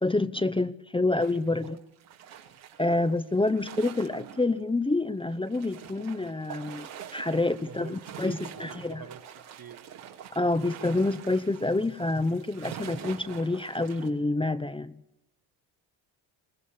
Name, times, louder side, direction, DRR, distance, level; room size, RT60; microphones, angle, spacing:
voice 1, 0.0-1.8 2.8-9.0 10.4-14.9, left 2 dB, 10° left, 0.8 m, -27 dB
sound 1, 1.2-4.6 4.8-4.9 5.2-14.1, right 9 dB, 85° right, 2.9 m, -45 dB
voice 2, 7.6-8.0 8.2-9.9, right 7 dB, 45° right, 1.7 m, -46 dB
22.0 x 18.5 x 8.6 m
supercardioid pair, 75°, 49 cm